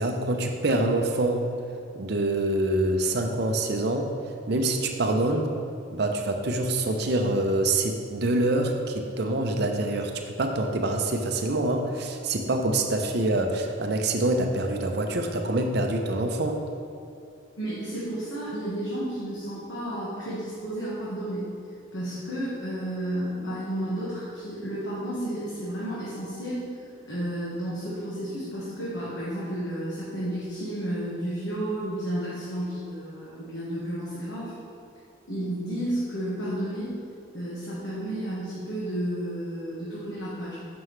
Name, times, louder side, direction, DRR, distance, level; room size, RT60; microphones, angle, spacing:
voice 1, 0.0-1.5 1.9-4.1 4.5-5.5 5.9-16.6, right 2 dB, 55° right, 4 dB, 0.6 m, -25 dB
voice 2, 17.6-21.5 21.9-26.7 27.1-34.5 35.3-37.0 37.3-40.5, right 1 dB, 60° left, -8 dB, 1.4 m, -32 dB
7.5 x 6.0 x 3.3 m, 2.5 s
head